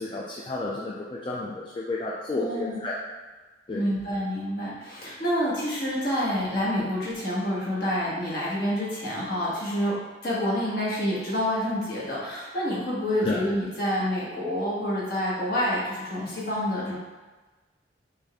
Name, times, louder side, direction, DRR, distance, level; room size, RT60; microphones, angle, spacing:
voice 1, 0.0-3.0 3.7-3.9 13.2-13.5, left 2 dB, 25° left, -4 dB, 0.3 m, -31 dB
voice 2, 2.3-2.8 3.7-10.0 10.2-17.0, equal, 55° left, -7 dB, 1.4 m, -28 dB
4.0 x 3.5 x 3.5 m, 1.3 s
head